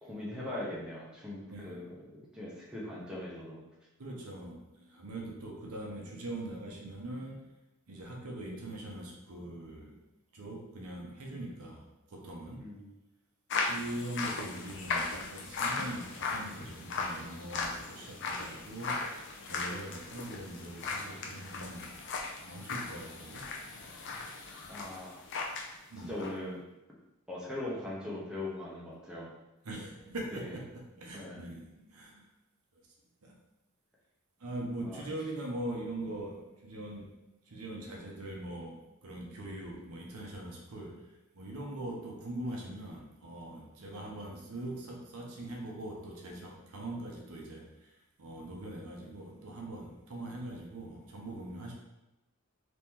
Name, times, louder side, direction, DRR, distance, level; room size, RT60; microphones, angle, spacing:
voice 1, 0.0-3.6 12.6-12.9 24.7-25.2 26.0-26.6 27.3-29.3 30.3-30.5 31.1-31.4 34.8-35.1, left 1 dB, 5° right, -7 dB, 0.8 m, -40 dB
voice 2, 1.5-1.9 4.0-7.4 7.9-10.0 10.3-12.7 13.7-22.0 22.4-23.5 25.9-26.1 29.6-32.2 33.2-33.4 34.4-37.1 37.5-41.1 41.3-47.9 48.2-51.7, right 1 dB, 80° right, -1 dB, 0.8 m, -42 dB
sound 1, 13.5-25.7 26.0-26.3, left 4 dB, 55° left, 0.5 m, -37 dB
3.0 x 2.9 x 3.6 m, 0.98 s
head